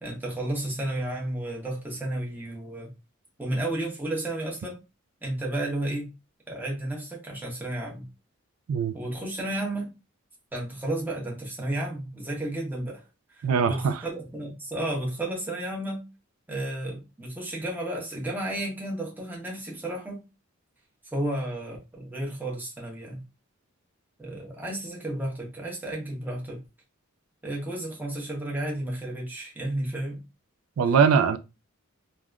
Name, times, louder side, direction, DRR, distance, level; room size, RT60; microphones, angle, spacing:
voice 1, 0.0-2.9 3.4-4.8 5.2-6.1 6.5-8.1 8.9-9.9 10.5-13.0 13.4-16.0 16.5-20.2 21.1-23.2 24.2-26.6 27.4-30.2, right 1 dB, 10° right, 0.9 m, -32 dB
voice 2, 13.4-14.0 30.8-31.4, right 6 dB, 85° right, 0.3 m, -21 dB
3.4 x 2.4 x 2.3 m
head